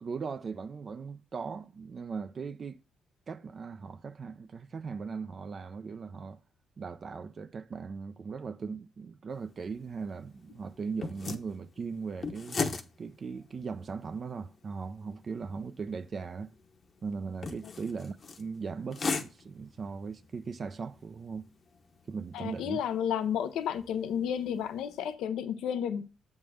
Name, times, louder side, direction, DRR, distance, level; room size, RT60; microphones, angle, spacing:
voice 1, 0.0-2.8 3.3-6.4 6.8-12.6 13.0-16.6 17.0-21.4 22.1-22.8, right 5 dB, 45° right, 0.4 m, -39 dB
sound 1, 9.3-25.1, left 4 dB, 45° left, 0.9 m, -41 dB
voice 2, 22.3-26.0, left 8 dB, 85° left, 0.6 m, -32 dB
7.5 x 3.6 x 6.3 m
cardioid pair, 90°, 0 cm